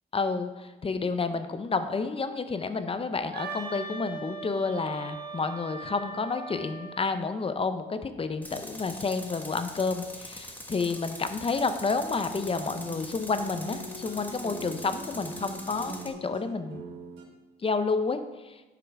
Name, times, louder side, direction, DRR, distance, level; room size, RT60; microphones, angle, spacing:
voice 1, 0.1-16.8 17.6-18.2 18.4-18.5, left 4 dB, 30° left, 9 dB, 0.6 m, -30 dB
Wind instrument woodwind instrument, 3.3-7.2, right 3 dB, 50° right, 1.3 m, -39 dB
Tools, 8.4-16.1, left 1 dB, 10° left, 1.3 m, -43 dB
sound 1, 12.3-17.2, right 2 dB, 70° right, 2.5 m, -43 dB
8.0 x 5.9 x 4.7 m, 1.2 s
cardioid pair, 90°, 20 cm